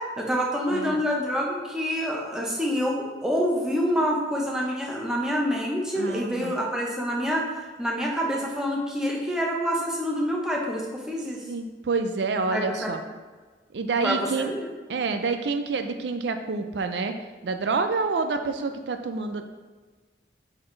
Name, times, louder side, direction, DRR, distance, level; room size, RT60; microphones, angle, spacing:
voice 1, 0.0-11.4 12.5-12.9 14.0-14.7, equal, 5° right, -2 dB, 0.9 m, -27 dB
voice 2, 6.0-6.5 11.4-13.0 13.7-14.5 14.9-17.1 17.4-19.4, right 4 dB, 75° right, 7 dB, 0.4 m, -28 dB
7.8 x 4.1 x 3.3 m, 1.4 s
head